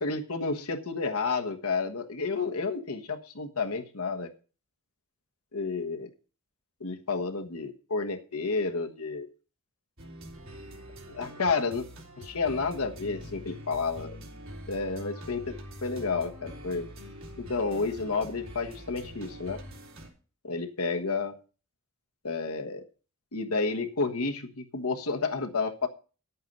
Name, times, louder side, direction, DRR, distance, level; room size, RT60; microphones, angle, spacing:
voice 1, 0.0-4.3 5.5-6.1 6.8-9.3 11.1-11.9 12.2-14.2 14.7-16.8 17.4-19.6 20.4-21.4 22.2-22.8 23.3-25.9, left 4 dB, 80° left, 4 dB, 1.4 m, -31 dB
sound 1, 10.0-20.1, equal, 60° right, 3.3 m, -44 dB
11.0 x 8.5 x 5.3 m, 0.36 s
head